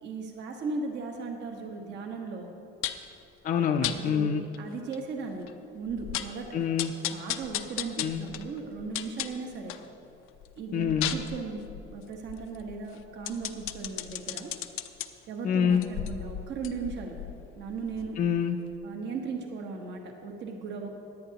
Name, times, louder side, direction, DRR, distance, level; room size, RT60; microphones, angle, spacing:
voice 1, 0.0-2.5 3.8-5.5 5.7-6.6 7.1-9.7 10.6-11.6 11.9-14.5 15.3-17.1 17.6-18.2 18.8-20.9, right 4 dB, 60° right, 2 dB, 1.3 m, -37 dB
sound 1, 2.8-3.1 3.8-4.0 4.5-4.6 4.9-5.0 5.5-5.6 5.9-6.4 6.8-9.9 10.3-15.1 15.7-18.4 18.7-18.8, left 12 dB, 85° left, 0.6 m, -36 dB
voice 2, 3.4-4.4 6.5-6.9 8.0-8.3 10.7-11.1 15.4-15.9 18.2-18.6, left 7 dB, 40° left, 4 dB, 0.5 m, -26 dB
17.0 x 10.5 x 2.9 m, 2.7 s
cardioid pair, 140°, 21 cm